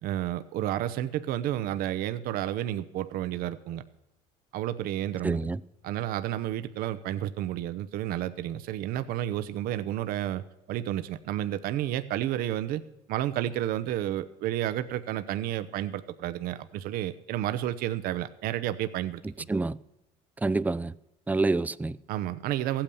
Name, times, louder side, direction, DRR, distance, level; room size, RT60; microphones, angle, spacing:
voice 1, 0.0-3.8 4.5-5.4 5.8-10.4 10.7-12.8 13.1-19.5 22.1-22.8, right 12 dB, 65° right, 0.8 m, -31 dB
voice 2, 5.2-5.6 19.2-19.8 20.4-20.9 21.3-22.0, right 3 dB, 10° right, 0.4 m, -27 dB
15.0 x 8.8 x 6.9 m
supercardioid pair, 90°, 16 cm